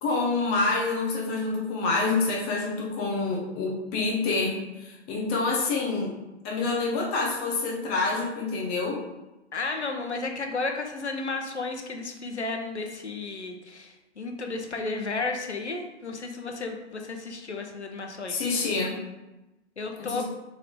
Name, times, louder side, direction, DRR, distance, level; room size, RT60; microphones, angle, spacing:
voice 1, 0.0-6.1 6.4-9.0 18.3-18.9 20.0-20.2, left 3 dB, 25° left, -2 dB, 1.3 m, -27 dB
voice 2, 9.5-18.5 19.8-20.2, left 3 dB, 80° left, 3 dB, 1.1 m, -33 dB
6.6 x 3.9 x 3.7 m, 1.0 s
figure-of-eight pair, 120°, 34 cm